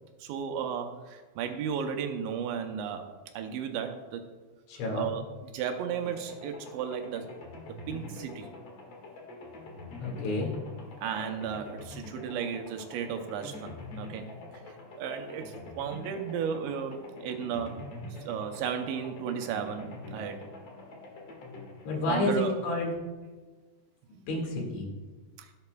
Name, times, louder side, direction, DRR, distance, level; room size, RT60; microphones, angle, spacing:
voice 1, 0.2-4.2 4.9-7.3 7.7-8.5 11.0-14.3 14.7-17.9 18.2-20.4 22.1-22.5 25.4-25.5, right 7 dB, 80° right, 5 dB, 2.9 m, -34 dB
voice 2, 4.7-5.1 10.0-10.5 21.8-22.9 24.3-24.9, left 2 dB, 80° left, -1 dB, 4.3 m, -30 dB
sound 1, 6.0-23.0, left 2 dB, 55° left, 1.9 m, -45 dB
16.5 x 8.2 x 2.3 m, 1.3 s
omnidirectional pair, 5.3 m